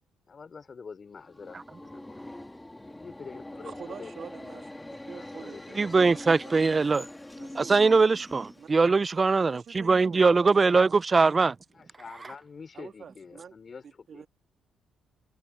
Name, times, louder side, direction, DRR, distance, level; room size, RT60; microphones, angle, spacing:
voice 1, 0.3-2.3 2.9-4.1 5.0-5.9 11.7-14.3, left 5 dB, 40° left, 4.2 m, -46 dB
Subway metro underground, 1.2-8.9, left 1 dB, 10° left, 2.4 m, -43 dB
voice 2, 3.6-4.7 5.1-6.5 7.4-7.8 8.6-8.7 9.5-10.5 10.8-11.2 12.7-13.5 14.1-14.3, right 7 dB, 55° right, 2.4 m, -46 dB
voice 3, 5.8-7.1 7.5-11.5, right 4 dB, 30° right, 0.5 m, -22 dB
cardioid pair, 90°, 0 cm